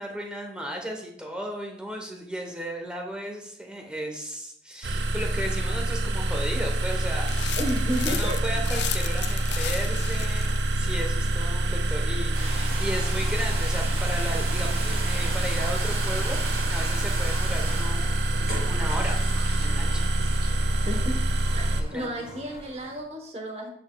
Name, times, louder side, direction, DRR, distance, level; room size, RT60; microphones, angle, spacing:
voice 1, 0.0-7.3 7.9-10.5 10.7-16.4 16.7-18.0 18.7-19.2 19.6-20.1 21.8-22.4, equal, 5° right, 1 dB, 0.9 m, -35 dB
sound 1, 4.8-21.8, right 1 dB, 80° right, 0.5 m, -26 dB
sound 2, 7.3-11.4, left 11 dB, 70° left, 0.4 m, -36 dB
voice 2, 7.6-8.4 20.8-21.2 21.5-23.7, equal, 35° right, 2 dB, 1.1 m, -32 dB
sound 3, 12.3-23.0, right 1 dB, 60° right, 2.8 m, -38 dB
8.5 x 6.1 x 2.3 m, 0.73 s
head